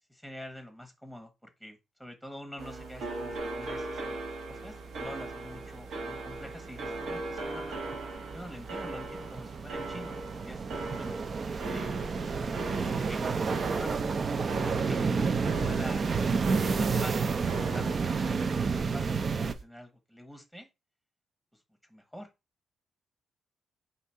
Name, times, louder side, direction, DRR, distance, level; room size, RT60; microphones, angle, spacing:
voice 1, 0.1-7.8 8.3-11.2 11.6-14.1 14.6-20.7 21.9-22.3, equal, 5° right, 6 dB, 1.0 m, -47 dB
sound 1, 2.6-19.6, right 2 dB, 80° right, 1.2 m, -39 dB
sound 2, 5.0-5.1 5.5-19.5, right 5 dB, 45° right, 0.4 m, -31 dB
4.0 x 2.7 x 4.4 m, 0.25 s
cardioid pair, 90°, 0 cm